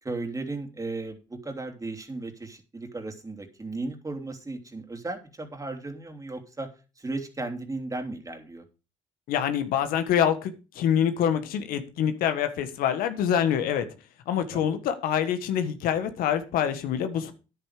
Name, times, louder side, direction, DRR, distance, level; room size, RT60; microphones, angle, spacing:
voice 1, 0.0-6.7 7.0-8.6 14.5-14.7, right 2 dB, 20° right, 6 dB, 3.1 m, -35 dB
voice 2, 9.3-13.8 14.3-17.3, left 9 dB, 75° left, 9 dB, 1.5 m, -26 dB
10.0 x 9.2 x 5.1 m, 0.32 s
hypercardioid pair, 60°, 15 cm